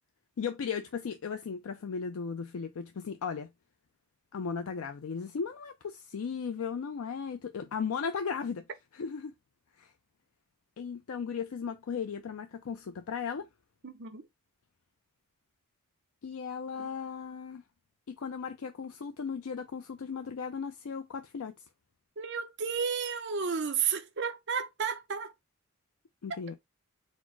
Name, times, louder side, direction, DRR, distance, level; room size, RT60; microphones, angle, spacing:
voice 1, 0.4-3.5 4.3-8.6 8.9-9.3 9.8-9.9 10.8-13.5 16.2-17.6 18.1-21.5 26.2-26.5, left 6 dB, 75° left, 0.4 m, -36 dB
voice 2, 13.8-14.2 16.8-16.9 22.2-25.3, right 6 dB, 50° right, 0.6 m, -32 dB
4.2 x 2.0 x 4.5 m
head